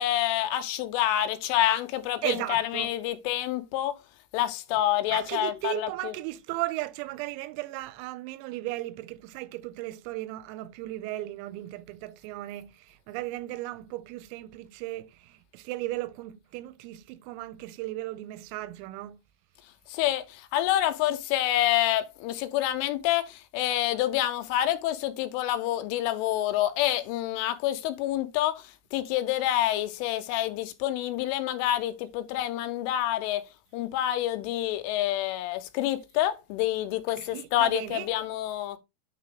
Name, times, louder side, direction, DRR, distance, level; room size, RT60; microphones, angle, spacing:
voice 1, 0.0-4.0 4.3-6.2 19.9-33.4 33.7-38.8, left 13 dB, 85° left, 3.1 m, -27 dB
voice 2, 2.2-2.9 5.1-19.2 37.2-38.1, right 17 dB, 90° right, 3.3 m, -36 dB
9.0 x 3.7 x 3.6 m
omnidirectional pair, 5.9 m